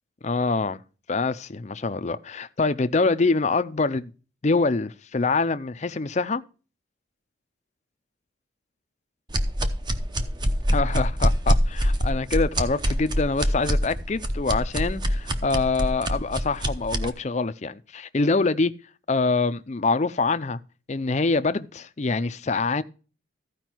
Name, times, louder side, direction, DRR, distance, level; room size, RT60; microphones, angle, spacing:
voice 1, 0.2-0.8 1.1-4.1 4.4-6.4 10.7-18.7 19.1-20.6 20.9-22.8, left 3 dB, 35° left, 0.5 m, -25 dB
sound 1, 9.3-17.1, equal, 20° right, 0.7 m, -24 dB
14.5 x 5.0 x 4.5 m
head